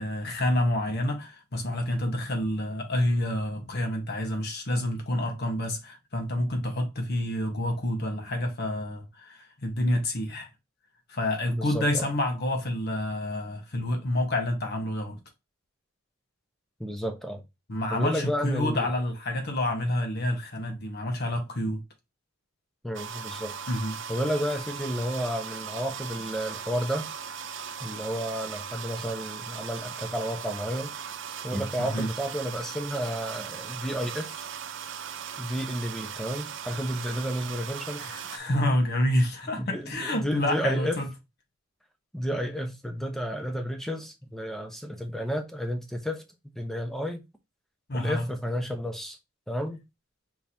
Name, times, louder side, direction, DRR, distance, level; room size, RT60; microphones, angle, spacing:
voice 1, 0.0-10.5 11.1-15.2 17.7-21.8 23.7-24.0 31.8-32.1 38.0-41.1 47.9-48.3, left 1 dB, 50° left, 1.2 m, -28 dB
voice 2, 11.5-12.1 16.8-17.4 17.9-18.9 22.8-23.6 24.1-27.1 27.8-30.9 31.4-34.5 35.4-38.3 39.6-41.0 42.1-46.2 46.6-47.2 47.9-49.2 49.5-49.8, equal, ahead, 0.7 m, -31 dB
sound 1, 22.9-38.4, right 7 dB, 60° right, 0.4 m, -38 dB
4.6 x 3.9 x 2.8 m
head